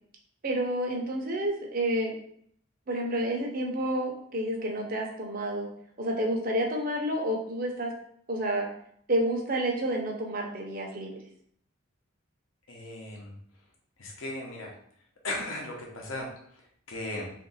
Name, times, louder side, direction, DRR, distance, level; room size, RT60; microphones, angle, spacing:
voice 1, 0.4-2.1 2.9-5.7 6.0-7.9 8.3-8.7 9.1-11.1, right 1 dB, 45° right, 0 dB, 0.8 m, -29 dB
voice 2, 12.7-13.3 14.0-14.7 15.2-17.3, left 1 dB, 80° left, -1 dB, 0.8 m, -37 dB
3.5 x 2.6 x 4.0 m, 0.66 s
head